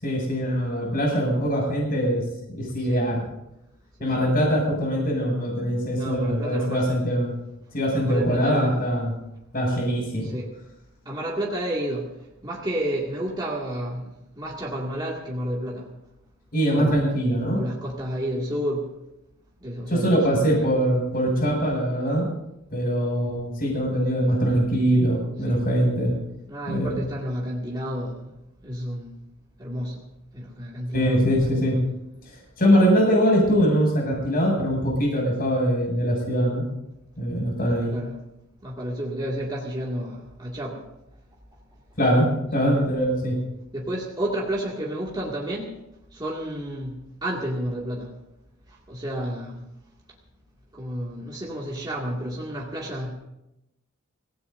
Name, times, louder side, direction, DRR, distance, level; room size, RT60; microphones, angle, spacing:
voice 1, 0.0-2.2 2.5-3.2 4.0-7.3 7.7-9.1 9.5-10.3 16.5-17.6 19.9-22.3 22.7-26.1 26.7-27.0 30.9-31.8 32.3-36.6 37.2-37.9 42.0-43.4, equal, 45° left, -1 dB, 7.3 m, -22 dB
voice 2, 5.9-6.9 8.0-8.9 10.2-10.5 11.1-12.1 12.4-15.9 16.7-17.0 17.5-18.9 19.6-20.8 25.5-25.6 26.5-28.3 28.6-29.1 29.6-30.0 30.3-31.7 37.9-38.2 38.6-40.8 42.6-42.7 43.7-45.7 46.1-47.0 47.2-48.1 48.9-49.6 50.7-53.1, equal, 20° right, -4 dB, 2.3 m, -31 dB
26.0 x 17.0 x 2.7 m, 0.88 s
head